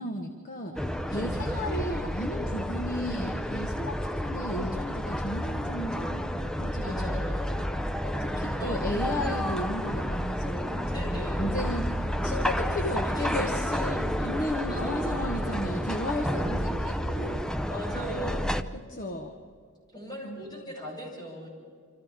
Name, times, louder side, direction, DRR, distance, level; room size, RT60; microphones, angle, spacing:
voice 1, 0.0-7.8 8.2-17.4 17.9-18.4 18.7-19.4 20.2-20.4, left 1 dB, 40° left, 3 dB, 1.5 m, -35 dB
sound 1, 0.8-18.6, equal, 5° left, 0.6 m, -30 dB
voice 2, 1.1-2.0 6.8-7.5 8.0-8.9 10.9-11.6 12.7-14.0 14.4-15.1 17.7-18.7 19.9-21.5, equal, 20° left, -4 dB, 7.9 m, -40 dB
sound 2, 9.0-17.5, right 1 dB, 20° right, 1.8 m, -42 dB
29.0 x 26.0 x 3.7 m, 2.1 s
head